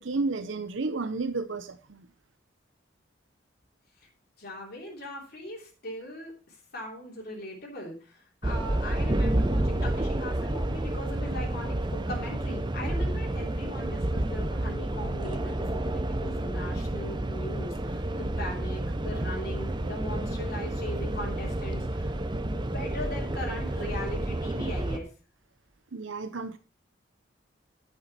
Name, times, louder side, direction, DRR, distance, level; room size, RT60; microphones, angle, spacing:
voice 1, 0.0-2.1 25.9-26.6, right 3 dB, 80° right, 0.8 m, -32 dB
voice 2, 4.4-22.1 22.4-25.1, left 1 dB, 60° left, 3.2 m, -39 dB
sound 1, 8.4-25.0, right 1 dB, 25° right, 0.8 m, -30 dB
9.9 x 8.7 x 4.2 m
head